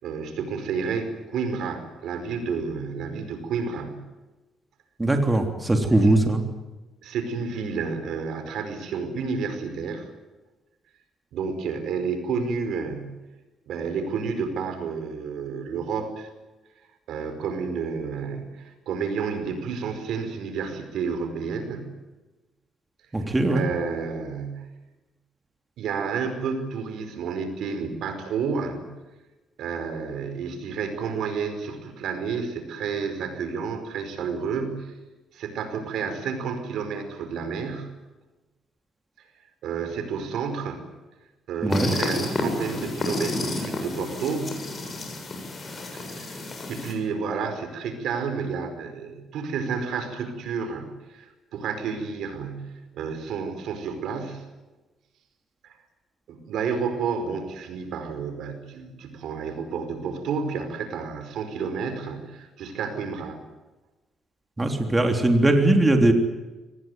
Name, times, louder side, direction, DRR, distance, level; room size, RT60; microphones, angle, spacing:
voice 1, 0.0-4.0 5.9-6.3 7.0-10.1 11.3-13.2 13.7-16.3 17.1-21.9 23.2-24.7 25.8-28.9 29.6-34.9 35.3-37.9 39.6-40.9 41.5-44.6 45.9-46.4 46.7-54.5 55.6-55.7 56.3-63.4, right 5 dB, 80° right, 8 dB, 5.1 m, -30 dB
voice 2, 5.0-6.4 23.1-23.7 41.6-41.9 64.6-66.1, right 2 dB, 15° right, 4 dB, 3.5 m, -20 dB
sound 1, 41.7-46.9, left 2 dB, 35° left, 7.9 m, -30 dB
24.0 x 20.0 x 9.4 m, 1.1 s
cardioid pair, 90°, 0 cm